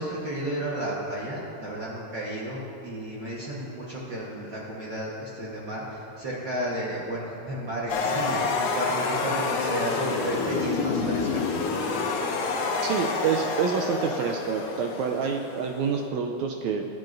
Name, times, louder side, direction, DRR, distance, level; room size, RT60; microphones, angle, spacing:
voice 1, 0.0-11.4, right 1 dB, 65° right, -6 dB, 1.1 m, -33 dB
sound 1, 7.9-16.1, left 4 dB, 70° left, 2.2 m, -28 dB
voice 2, 12.8-16.9, right 6 dB, 90° right, 3 dB, 1.6 m, -27 dB
20.0 x 9.6 x 2.6 m, 2.9 s
omnidirectional pair, 3.8 m